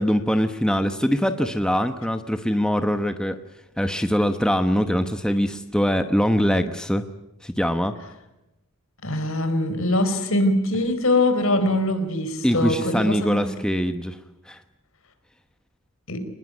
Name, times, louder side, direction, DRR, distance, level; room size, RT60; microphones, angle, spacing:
voice 1, 0.0-3.4 3.8-7.0 7.4-8.0 12.4-14.2 14.5-14.6, equal, 5° left, 7 dB, 1.0 m, -23 dB
voice 2, 9.0-13.6 16.1-16.2, left 1 dB, 65° left, 9 dB, 4.2 m, -23 dB
26.0 x 20.5 x 9.4 m, 0.93 s
head